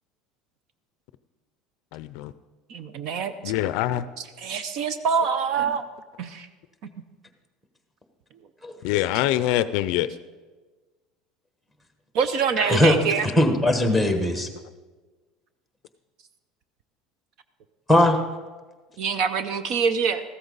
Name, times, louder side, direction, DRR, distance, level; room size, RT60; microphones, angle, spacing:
voice 1, 1.9-2.3 3.4-4.0 8.8-10.1, left 13 dB, 60° left, 14 dB, 0.4 m, -24 dB
voice 2, 2.7-3.3 4.2-5.8 6.2-6.5 12.1-13.3 19.0-20.2, right 6 dB, 50° right, 11 dB, 0.6 m, -25 dB
voice 3, 12.6-13.0 13.2-14.5 17.9-18.2, left 1 dB, 5° right, 6 dB, 1.1 m, -19 dB
14.5 x 13.5 x 4.0 m, 1.3 s
cardioid pair, 165°, 0 cm